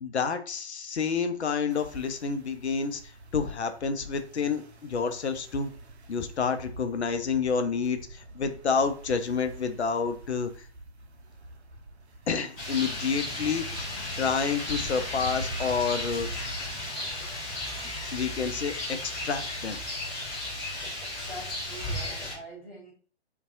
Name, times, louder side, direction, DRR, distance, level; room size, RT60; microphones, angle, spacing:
voice 1, 0.0-5.7 6.1-10.7 12.3-13.6 14.2-16.3 18.1-19.8, left 5 dB, 80° left, 8 dB, 0.5 m, -29 dB
sound 1, 1.7-16.7, right 1 dB, 75° right, 0.5 m, -46 dB
Rain, 12.6-22.3, left 1 dB, 20° left, 0.7 m, -35 dB
voice 2, 21.2-22.9, equal, 15° right, -10 dB, 0.3 m, -44 dB
2.6 x 2.3 x 2.3 m, 0.40 s
figure-of-eight pair, 125°, 33 cm